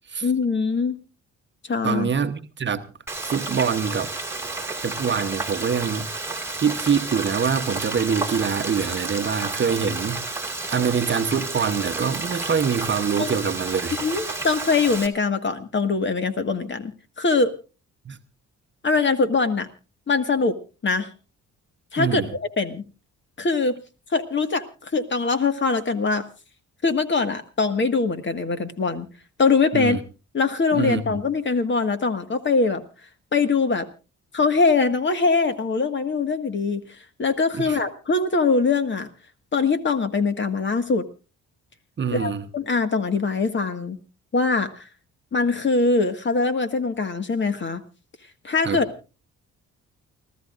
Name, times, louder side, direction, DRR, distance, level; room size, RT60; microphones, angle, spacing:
voice 1, 0.2-1.0 1.7-2.1 13.2-13.4 14.0-17.5 18.8-19.7 20.1-20.6 20.8-21.1 21.9-22.8 23.4-23.8 24.1-26.2 26.8-29.1 29.4-30.0 30.3-32.8 33.3-33.9 34.3-39.1 39.5-41.1 42.1-44.0 44.3-44.9 45.3-47.8 48.4-48.9, left 4 dB, 40° left, 1.7 m, -22 dB
voice 2, 1.8-2.9 3.2-4.1 4.8-6.1 6.6-10.2 10.7-14.0 18.0-18.2 22.0-22.3 29.7-30.0 30.7-31.2 37.6-37.8 42.0-42.5 48.6-48.8, right 6 dB, 40° right, 1.0 m, -24 dB
Frying (food), 3.1-15.1, right 3 dB, 10° right, 1.9 m, -31 dB
29.0 x 14.0 x 2.5 m
cardioid pair, 90°, 30 cm